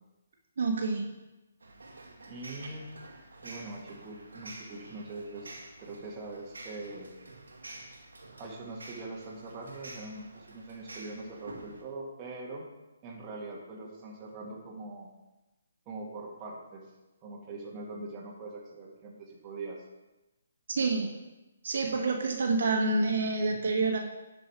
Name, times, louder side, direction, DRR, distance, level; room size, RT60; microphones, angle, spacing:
voice 1, 0.6-1.1 20.7-21.1 21.6-24.0, right 3 dB, 65° right, 1 dB, 1.7 m, -27 dB
sound 1, 1.6-11.8, right 2 dB, 90° right, 1.8 m, -49 dB
voice 2, 2.3-2.9 3.4-7.1 8.4-12.6 13.0-15.1 15.9-16.9 17.2-19.8, right 2 dB, 25° right, -3 dB, 1.8 m, -42 dB
11.0 x 5.3 x 4.7 m, 1.1 s
hypercardioid pair, 155°, 0 cm